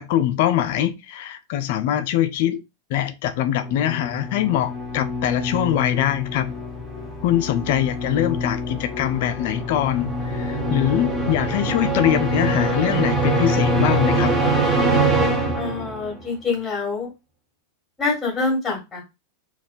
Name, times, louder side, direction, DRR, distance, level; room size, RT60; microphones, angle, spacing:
voice 1, 0.0-2.6 2.9-6.5 7.2-14.3, left 11 dB, 50° left, 0.4 m, -23 dB
sound 1, 3.5-16.2, right 1 dB, 5° right, 0.9 m, -24 dB
voice 2, 15.5-17.1 18.0-19.0, left 4 dB, 10° left, 1.9 m, -25 dB
4.1 x 2.3 x 2.5 m
figure-of-eight pair, 90°, 0 cm